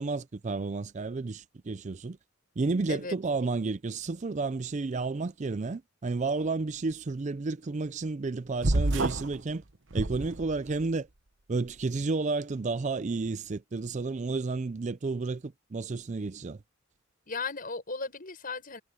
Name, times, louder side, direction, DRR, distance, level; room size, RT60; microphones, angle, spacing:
voice 1, 0.0-2.2 2.6-9.6 9.9-11.1 11.5-16.6, right 3 dB, 35° right, 0.4 m, -31 dB
sound 1, 8.6-9.4 9.9-10.8, right 2 dB, 65° right, 1.2 m, -28 dB
voice 2, 17.3-18.8, left 4 dB, 45° left, 7.5 m, -36 dB
head